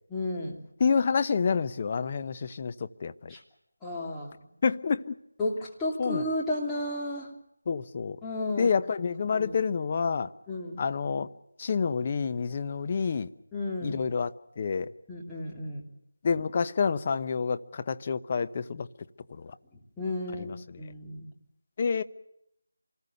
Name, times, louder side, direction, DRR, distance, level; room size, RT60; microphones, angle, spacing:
voice 1, 0.1-0.6 3.3-3.4 3.8-4.4 5.4-7.3 8.2-8.7 9.3-9.6 10.5-10.8 13.5-14.0 15.1-15.8 20.0-20.5 20.8-21.3, left 1 dB, 5° left, 2.8 m, -33 dB
voice 2, 0.8-3.3 4.6-5.2 6.0-6.2 7.7-8.2 8.6-10.3 10.8-11.3 11.6-13.3 13.8-14.9 16.2-18.9 19.3-19.6 20.4-20.6 21.8-22.0, left 5 dB, 30° left, 0.9 m, -28 dB
27.0 x 20.0 x 6.8 m
figure-of-eight pair, 170°, 0 cm